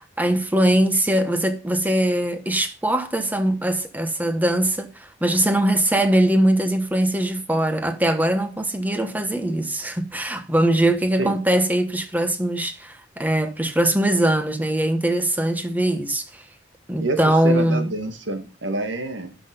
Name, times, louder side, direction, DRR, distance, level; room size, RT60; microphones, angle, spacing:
voice 1, 0.0-16.4 16.9-17.9, right 1 dB, 10° right, 1.2 m, -21 dB
voice 2, 17.4-19.4, right 2 dB, 80° right, 1.9 m, -27 dB
11.5 x 6.0 x 5.3 m
head